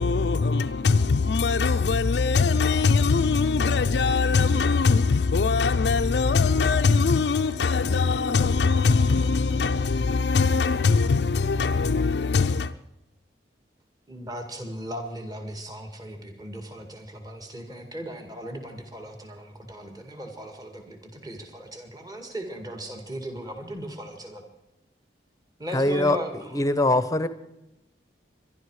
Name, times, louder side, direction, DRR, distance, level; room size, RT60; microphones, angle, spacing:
voice 1, 0.0-12.7, left 4 dB, 65° left, 0.5 m, -22 dB
voice 2, 14.1-24.4 25.6-26.6 26.9-27.0, right 1 dB, 20° right, 2.0 m, -37 dB
voice 3, 25.7-26.2 26.5-27.3, left 2 dB, 20° left, 0.8 m, -22 dB
23.5 x 11.5 x 4.8 m
head